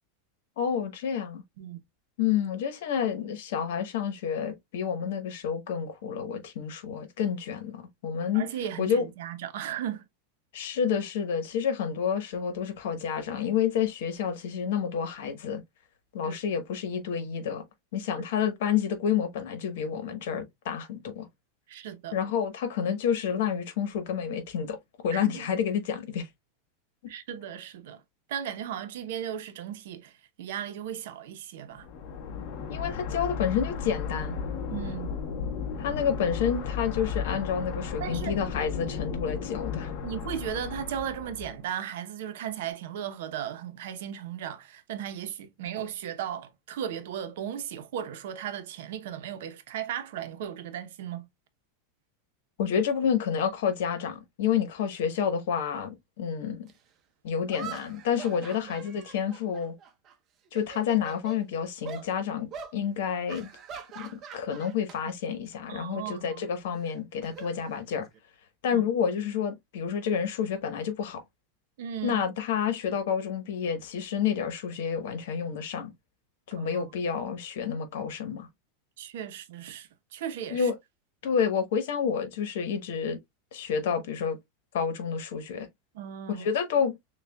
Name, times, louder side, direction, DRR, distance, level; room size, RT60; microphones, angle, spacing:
voice 1, 0.6-1.4 2.2-8.5 8.8-9.1 10.5-15.6 16.1-17.6 17.9-21.3 22.1-24.8 25.0-26.3 32.7-34.4 35.8-39.9 52.6-56.7 57.2-59.7 60.5-63.5 63.9-68.1 68.6-71.2 72.0-75.9 76.5-78.5 80.5-80.8 81.2-83.2 83.5-84.4 84.7-85.7 86.4-86.9, left 7 dB, 70° left, 1.2 m, -29 dB
voice 2, 8.3-10.0 16.2-16.4 18.2-18.3 21.7-22.2 25.1-25.5 27.1-28.0 28.3-30.1 30.4-31.9 34.7-35.1 38.0-38.6 40.0-51.3 58.6-58.7 65.7-66.4 68.7-68.8 71.8-72.2 76.5-76.9 79.0-80.7 85.9-86.5, right 9 dB, 70° right, 0.8 m, -36 dB
sound 1, 31.8-41.6, left 6 dB, 45° left, 1.0 m, -34 dB
sound 2, 56.7-56.8 57.5-60.1 60.5-61.4 61.8-62.1 62.5-62.8 63.3-65.0 65.3-65.6 66.8-68.2, right 7 dB, 30° right, 0.7 m, -43 dB
6.6 x 2.4 x 2.3 m
supercardioid pair, 150°, 0 cm